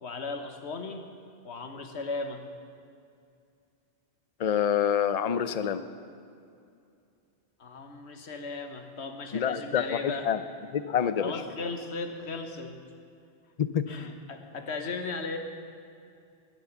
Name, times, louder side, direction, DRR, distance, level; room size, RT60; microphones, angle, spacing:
voice 1, 0.0-1.0 1.4-2.4 7.6-10.3 11.2-12.7 13.9-15.4, left 3 dB, 90° left, 6 dB, 1.5 m, -36 dB
voice 2, 4.4-5.8 9.3-10.4 10.7-11.3 13.6-13.9, left 8 dB, 45° left, 12 dB, 0.6 m, -27 dB
20.0 x 7.8 x 7.2 m, 2.5 s
omnidirectional pair, 1.1 m